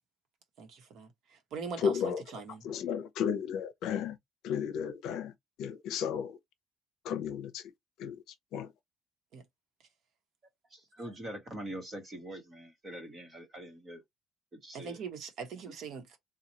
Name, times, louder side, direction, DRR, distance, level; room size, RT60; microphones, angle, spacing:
voice 1, 0.6-1.9 2.3-2.6 9.3-9.4 14.7-16.2, right 5 dB, 50° right, 1.1 m, -42 dB
voice 2, 1.8-2.2 2.6-4.2 4.4-6.4 7.0-7.7 8.0-8.7, left 7 dB, 60° left, 0.7 m, -34 dB
voice 3, 10.7-14.0 14.5-15.0, right 1 dB, 20° right, 1.2 m, -44 dB
4.2 x 2.3 x 2.9 m
cardioid pair, 180°, 0 cm